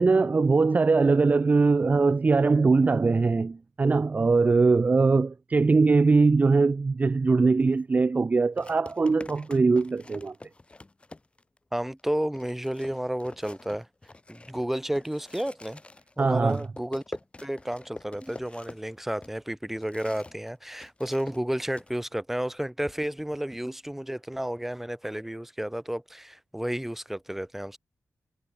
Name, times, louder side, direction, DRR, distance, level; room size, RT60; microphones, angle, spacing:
voice 1, 0.0-10.3 16.2-16.6, right 4 dB, 30° right, 0.6 m, -21 dB
sound 1, 7.6-7.8 8.6-11.6 12.0-12.1 12.4-20.5 20.8-21.9, left 2 dB, 20° left, 2.3 m, -46 dB
voice 2, 11.7-13.9 14.3-15.8 16.2-27.8, right 1 dB, 5° right, 2.8 m, -32 dB
wide cardioid pair, 155°, 5 cm